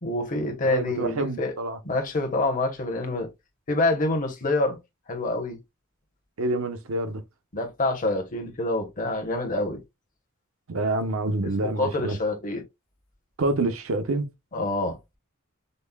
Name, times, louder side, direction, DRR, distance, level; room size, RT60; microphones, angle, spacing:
voice 1, 0.0-1.5 1.8-3.3 3.7-4.8 5.1-5.6 7.5-9.8 11.6-12.6 14.5-15.0, left 2 dB, 40° left, 0.9 m, -26 dB
voice 2, 0.6-1.8 6.4-7.2 10.7-12.2 13.4-14.2, right 2 dB, 70° right, 0.6 m, -27 dB
5.2 x 2.1 x 2.2 m
head